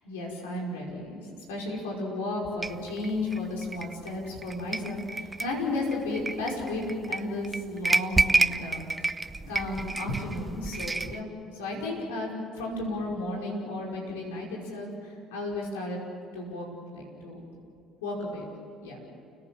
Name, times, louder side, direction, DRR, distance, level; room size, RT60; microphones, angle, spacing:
voice 1, 0.0-1.2 1.5-12.3 12.6-16.0 16.3-16.7 16.9-17.4 18.0-18.4 18.8-19.0, left 2 dB, 90° left, -1 dB, 5.3 m, -33 dB
sound 1, 2.6-11.2, right 3 dB, 20° right, 0.8 m, -30 dB
30.0 x 17.5 x 7.5 m, 2.7 s
hypercardioid pair, 70°, 0 cm